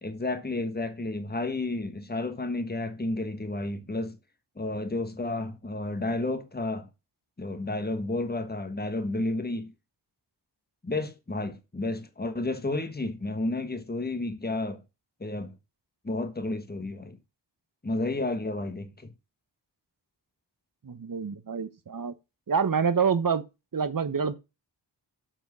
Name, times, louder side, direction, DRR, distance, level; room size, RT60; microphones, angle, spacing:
voice 1, 0.0-4.2 4.6-6.9 7.4-9.7 10.8-14.8 15.2-15.5 16.0-17.2 17.8-19.1, left 2 dB, 20° left, 1.4 m, -31 dB
voice 2, 20.8-22.1 22.5-23.4 23.7-24.3, right 6 dB, 50° right, 1.0 m, -27 dB
7.8 x 4.5 x 6.1 m
wide cardioid pair, 55°, 44 cm